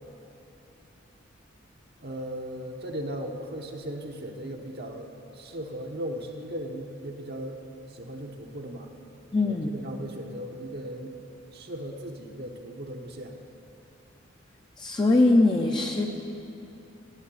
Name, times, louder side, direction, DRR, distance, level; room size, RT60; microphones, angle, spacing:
voice 1, 2.0-7.6 7.9-8.9 9.5-11.1 11.5-13.4, right 1 dB, 55° right, 1 dB, 0.9 m, -37 dB
voice 2, 9.3-9.7 14.8-16.1, left 2 dB, 20° left, 1 dB, 0.6 m, -21 dB
12.5 x 7.7 x 9.7 m, 3.0 s
head